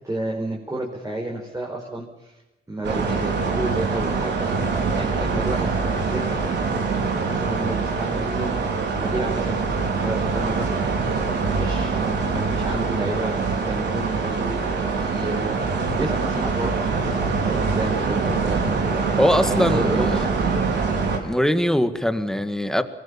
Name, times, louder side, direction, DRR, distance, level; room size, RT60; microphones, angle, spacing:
voice 1, 0.0-2.3 2.7-4.5 4.9-5.7 6.0-6.4 6.9-8.5 9.0-10.7 11.5-13.4 13.6-14.6 14.9-17.0 17.4-20.3, right 1 dB, 15° right, -1 dB, 5.2 m, -30 dB
sound 1, 2.8-21.2, right 4 dB, 60° right, 5.2 m, -24 dB
voice 2, 19.2-20.3 21.2-22.8, equal, 5° left, 9 dB, 2.0 m, -21 dB
24.0 x 20.5 x 7.3 m, 1.0 s
cardioid pair, 90°, 20 cm